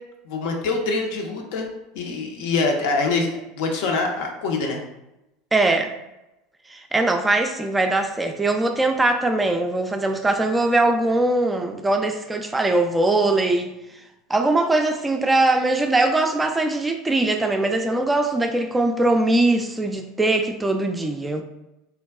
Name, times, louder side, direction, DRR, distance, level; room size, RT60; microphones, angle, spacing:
voice 1, 0.2-1.7 1.9-4.8, left 3 dB, 65° left, 2 dB, 0.5 m, -24 dB
voice 2, 5.5-5.9 6.7-13.7 14.3-21.4, right 2 dB, 15° right, 5 dB, 0.3 m, -21 dB
3.4 x 2.2 x 2.2 m, 0.94 s
hypercardioid pair, 85°, 0 cm